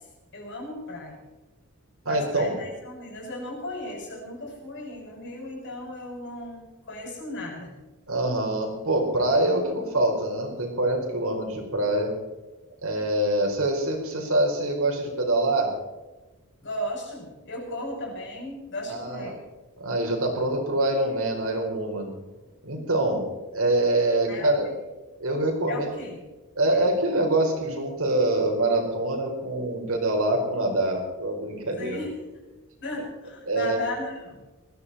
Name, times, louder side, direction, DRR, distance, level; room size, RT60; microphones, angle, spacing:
voice 1, 0.3-1.2 2.1-7.7 16.6-19.3 24.3-24.7 25.7-26.2 26.7-26.9 31.8-32.2 32.8-34.4, left 1 dB, 55° left, 0 dB, 6.5 m, -36 dB
voice 2, 2.0-2.6 8.1-12.1 12.8-15.7 18.9-19.4 19.8-22.1 22.6-24.7 25.2-25.9 26.6-32.0 33.5-33.8, right 1 dB, 70° right, 1 dB, 4.9 m, -25 dB
21.0 x 15.0 x 4.3 m, 1.1 s
head